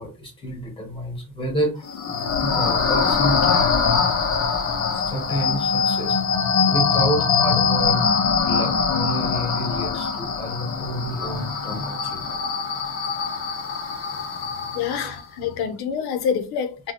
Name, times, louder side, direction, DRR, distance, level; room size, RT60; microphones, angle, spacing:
voice 1, 0.0-1.9 2.4-4.1 4.9-6.4 6.7-8.1 8.4-12.4 13.4-13.5 14.2-14.3 14.6-14.7 15.0-15.1, equal, 15° left, 1.1 m, -29 dB
sound 1, 1.8-15.2, left 5 dB, 40° left, 0.6 m, -23 dB
voice 2, 14.7-16.9, left 7 dB, 90° left, 0.7 m, -26 dB
2.8 x 2.2 x 4.1 m
cardioid pair, 175°, 36 cm